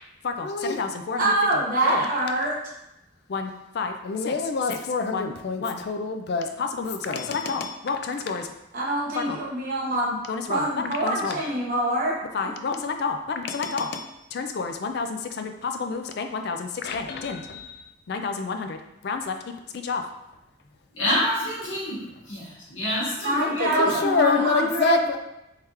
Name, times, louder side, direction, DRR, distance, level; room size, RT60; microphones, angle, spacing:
voice 1, 0.2-1.3 1.8-2.0 3.3-8.5 9.2-9.4 10.3-11.4 12.3-19.4 19.7-20.0 23.4-25.2, left 4 dB, 55° left, 6 dB, 0.3 m, -28 dB
voice 2, 1.2-2.5 8.7-10.2 10.5-12.2 23.2-25.0, right 1 dB, 45° right, -6 dB, 1.0 m, -24 dB
voice 3, 20.9-23.9, left 1 dB, 70° left, -7 dB, 1.4 m, -28 dB
3.5 x 3.2 x 2.9 m, 0.91 s
head